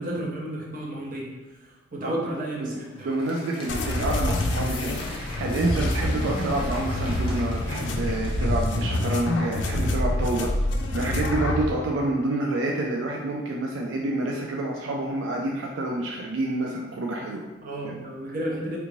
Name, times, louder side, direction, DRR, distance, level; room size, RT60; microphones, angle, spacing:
voice 1, 0.0-1.3 1.9-3.1 17.6-18.8, right 1 dB, 45° right, -3 dB, 0.7 m, -32 dB
Applause, 2.5-10.1, left 1 dB, 30° left, 0.7 m, -42 dB
voice 2, 2.6-10.5 10.9-17.4 17.8-18.0, right 2 dB, 80° right, -1 dB, 0.4 m, -28 dB
sound 1, 3.7-11.7, left 1 dB, 70° left, 0.4 m, -26 dB
3.4 x 2.5 x 3.1 m, 1.1 s
head